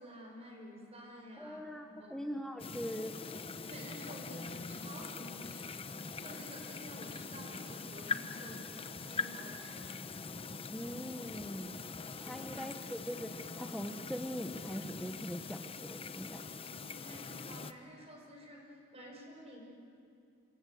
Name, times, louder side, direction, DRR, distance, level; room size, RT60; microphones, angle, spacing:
voice 1, 0.0-2.2 3.6-5.9 6.2-9.9 12.2-12.5 16.7-19.6, equal, 35° right, 0 dB, 6.0 m, -51 dB
voice 2, 1.4-3.1 10.7-11.8 12.2-16.5, equal, 5° left, 2 dB, 1.1 m, -42 dB
sound 1, 2.6-17.7, left 4 dB, 30° left, 0.8 m, -43 dB
28.0 x 25.5 x 7.9 m, 2.6 s
head